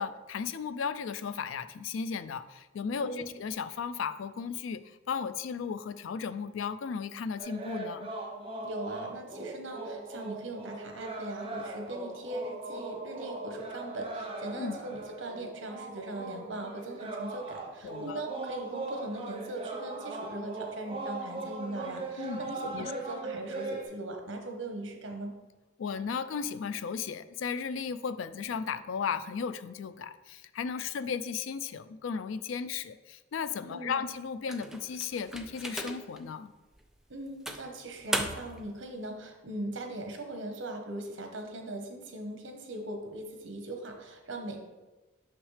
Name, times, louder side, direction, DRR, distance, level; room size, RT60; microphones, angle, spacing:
voice 1, 0.0-8.1 14.6-14.7 17.8-18.2 22.2-22.9 25.8-36.5, left 6 dB, 90° left, 13 dB, 0.4 m, -35 dB
sound 1, 7.4-23.8, right 2 dB, 30° right, 0.8 m, -40 dB
voice 2, 8.6-25.4 33.7-34.1 37.1-44.6, right 1 dB, 80° right, 4 dB, 1.0 m, -40 dB
sound 2, 34.5-36.2 36.7-36.9 37.5-38.7, right 1 dB, 5° right, 0.4 m, -36 dB
6.4 x 5.9 x 3.2 m, 1.2 s
head